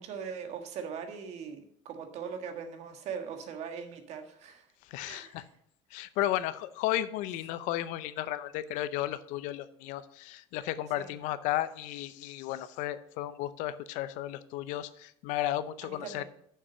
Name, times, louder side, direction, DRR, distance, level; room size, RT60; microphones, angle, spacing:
voice 1, 0.0-4.7 5.0-5.5 11.0-11.1 15.8-16.2, right 6 dB, 55° right, 6 dB, 1.5 m, -40 dB
voice 2, 4.8-5.4 5.9-16.2, left 13 dB, 70° left, 15 dB, 0.6 m, -34 dB
6.8 x 6.0 x 6.9 m, 0.70 s
cardioid pair, 135°, 14 cm